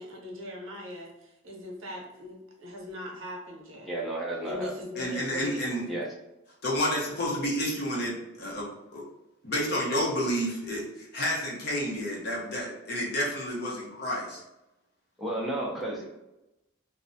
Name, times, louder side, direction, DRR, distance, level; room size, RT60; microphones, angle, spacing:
voice 1, 0.0-3.9 4.4-6.0, left 1 dB, 85° right, -2 dB, 0.7 m, -40 dB
voice 2, 3.9-4.7 5.9-6.1 15.2-16.1, right 1 dB, ahead, -5 dB, 0.4 m, -32 dB
voice 3, 5.0-5.8 6.6-8.7 8.9-9.0 9.4-14.4, equal, 55° left, -3 dB, 0.7 m, -30 dB
2.4 x 2.1 x 2.5 m, 0.94 s
head